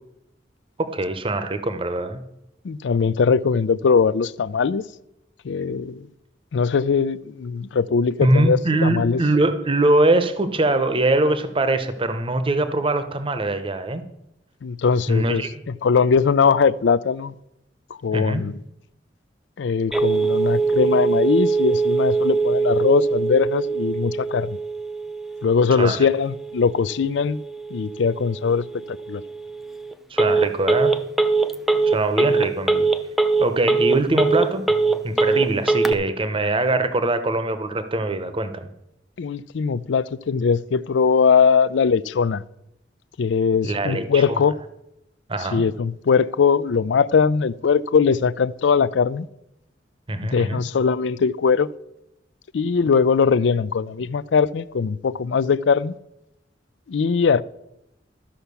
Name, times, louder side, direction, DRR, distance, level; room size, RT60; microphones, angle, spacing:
voice 1, 0.8-2.2 8.2-14.0 15.1-15.6 18.1-18.4 25.7-26.0 30.1-30.9 31.9-32.9 33.4-34.6 35.0-38.7 43.6-44.4 45.3-45.6 50.1-50.6, right 2 dB, 30° right, 0.8 m, -22 dB
voice 2, 2.6-4.8 5.4-6.1 6.5-9.2 14.6-17.3 18.0-18.6 19.6-24.6 25.4-27.4 27.7-29.2 39.2-42.4 43.2-44.6 45.5-49.3 50.3-51.7 52.5-55.9 56.9-57.4, left 5 dB, 70° left, 0.4 m, -20 dB
Telephone, 19.9-35.9, right 4 dB, ahead, 0.6 m, -22 dB
13.0 x 5.7 x 6.8 m
head